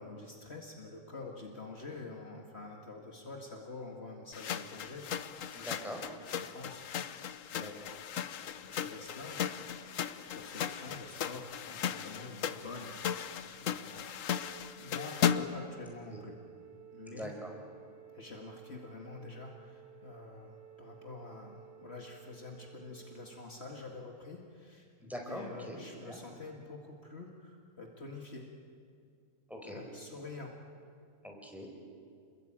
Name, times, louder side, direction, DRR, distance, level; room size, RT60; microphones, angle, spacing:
voice 1, 0.0-5.1 6.3-6.8 7.5-8.0 8.6-9.4 10.0-13.3 13.6-14.3 14.8-16.3 16.9-17.3 18.1-24.9 25.3-28.4 29.6-30.5, left 3 dB, 50° left, 1 dB, 2.2 m, -47 dB
sound 1, 4.3-15.7, left 8 dB, 75° left, 1.2 m, -36 dB
voice 2, 5.5-6.0 7.5-7.7 16.1-16.2 17.1-17.5 25.0-25.8 26.0-26.2 29.5-29.8 31.2-31.7, equal, ahead, 1 dB, 4.7 m, -43 dB
Wind instrument woodwind instrument, 14.3-23.5, right 11 dB, 70° right, 2.2 m, -55 dB
28.0 x 21.5 x 8.8 m, 2.3 s
omnidirectional pair, 1.4 m